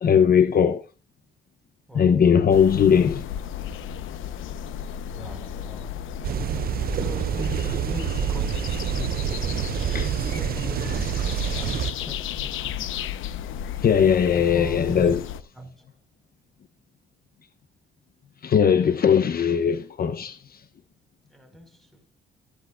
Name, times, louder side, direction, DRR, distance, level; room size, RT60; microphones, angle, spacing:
voice 1, 0.0-0.8 1.9-3.2 9.9-10.1 13.8-15.2 18.4-20.6, left 7 dB, 50° left, 0.9 m, -19 dB
voice 2, 1.9-2.2 5.1-6.3 6.9-9.7 10.3-12.8 14.3-15.1 15.6-15.9 21.3-22.0, right 1 dB, ahead, 5.2 m, -40 dB
sound 1, 2.5-15.4, left 9 dB, 80° left, 1.0 m, -34 dB
sound 2, 6.2-11.9, right 10 dB, 50° right, 0.5 m, -27 dB
14.5 x 13.5 x 2.5 m
cardioid pair, 90°, 20 cm